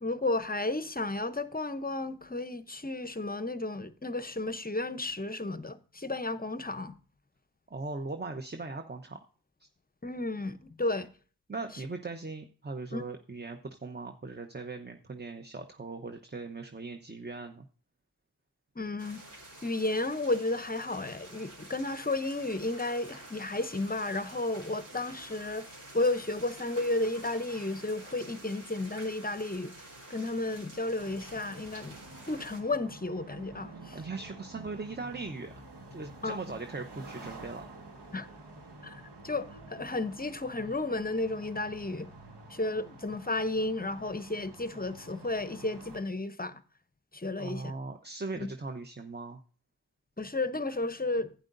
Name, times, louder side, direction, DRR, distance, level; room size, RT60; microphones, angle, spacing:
voice 1, 0.0-6.9 10.0-11.1 12.9-13.0 18.8-19.2 19.6-25.7 25.9-29.7 30.1-32.0 32.3-34.0 36.2-36.6 38.1-38.3 38.8-42.1 42.5-46.6 47.1-47.6 48.3-48.5 50.2-51.3, left 2 dB, 20° left, 0.7 m, -33 dB
voice 2, 7.7-9.2 9.6-9.7 11.5-17.7 33.9-35.6 35.9-37.6 47.3-49.4, right 3 dB, 25° right, 0.9 m, -39 dB
sound 1, 19.0-32.6, right 1 dB, 45° right, 3.8 m, -49 dB
sound 2, 31.0-46.0, right 2 dB, 80° right, 1.8 m, -49 dB
11.5 x 9.3 x 2.6 m
cardioid pair, 55°, 40 cm